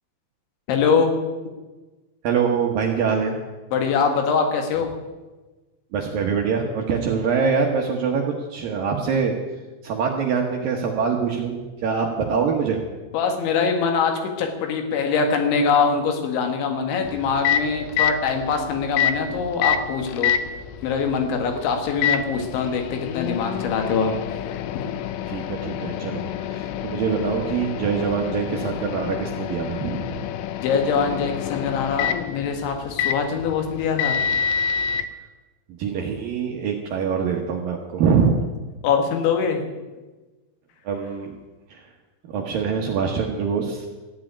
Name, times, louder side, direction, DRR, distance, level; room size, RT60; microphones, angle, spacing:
voice 1, 0.7-1.1 3.7-4.9 13.1-20.3 20.8-24.1 30.6-34.2 38.8-39.7, left 5 dB, 70° left, 4 dB, 3.9 m, -23 dB
voice 2, 2.2-3.4 5.9-9.4 9.8-12.8 25.3-30.2 35.8-38.4 40.9-41.3 41.7-41.8 42.3-43.9, right 6 dB, 75° right, 1 dB, 2.1 m, -24 dB
Microwave oven, 17.0-35.1, left 8 dB, 85° left, 3.5 m, -28 dB
15.0 x 7.6 x 10.0 m, 1.2 s
omnidirectional pair, 5.9 m